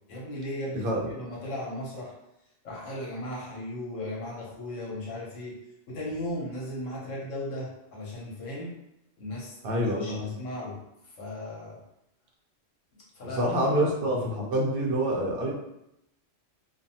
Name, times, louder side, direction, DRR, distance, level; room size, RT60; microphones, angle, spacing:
voice 1, 0.1-2.1 2.6-8.7 9.2-11.8 12.9-13.4 13.8-13.9, left 1 dB, 80° left, -4 dB, 1.1 m, -37 dB
voice 2, 9.6-10.3 13.4-15.5, right 1 dB, 55° right, -1 dB, 0.7 m, -26 dB
2.5 x 2.3 x 2.7 m, 0.84 s
omnidirectional pair, 1.3 m